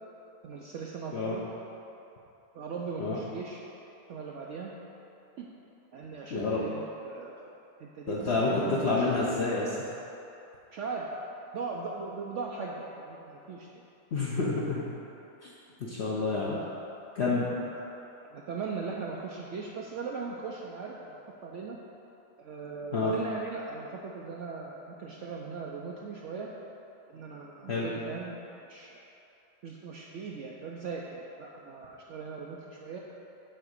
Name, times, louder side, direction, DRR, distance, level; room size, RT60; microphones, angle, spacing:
voice 1, 0.4-1.5 2.5-3.6 4.1-4.7 5.4-5.5 5.9-7.5 7.8-9.1 10.7-11.1 11.5-13.8 16.1-16.8 17.6-17.9 18.3-21.8 22.4-26.5 27.1-28.9 29.6-33.0, right 4 dB, 65° right, -2 dB, 0.8 m, -39 dB
voice 2, 6.3-6.7 8.1-8.5 8.8-9.8 14.1-14.9 15.4-15.5 15.8-16.6 17.1-17.5 22.9-23.1 27.7-27.9, left 3 dB, 50° left, -6 dB, 0.9 m, -29 dB
7.9 x 3.6 x 6.5 m, 2.9 s
omnidirectional pair, 1.6 m